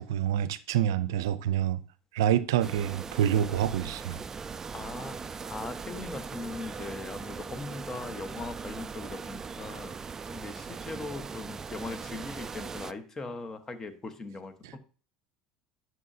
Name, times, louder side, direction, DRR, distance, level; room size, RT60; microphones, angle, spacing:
voice 1, 0.0-1.8 2.1-4.2 14.6-14.7, right 10 dB, 85° right, 0.5 m, -27 dB
sound 1, 2.6-12.9, right 5 dB, 25° right, 0.4 m, -40 dB
voice 2, 4.7-10.0 10.3-14.8, left 3 dB, 25° left, 1.2 m, -40 dB
11.0 x 6.1 x 2.8 m
supercardioid pair, 95°, 2 cm